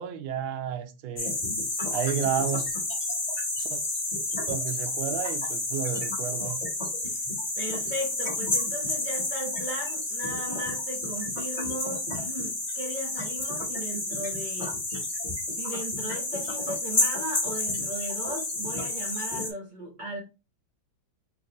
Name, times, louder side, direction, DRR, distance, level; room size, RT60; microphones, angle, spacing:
voice 1, 0.0-1.4 1.9-2.7 3.6-3.8 4.5-6.6, right 9 dB, 85° right, 1.5 m, -31 dB
sound 1, 1.2-19.5, left 2 dB, 25° left, 1.2 m, -30 dB
voice 2, 7.6-14.8 15.6-20.2, right 1 dB, 35° right, 0.8 m, -37 dB
4.1 x 2.6 x 3.8 m
omnidirectional pair, 2.2 m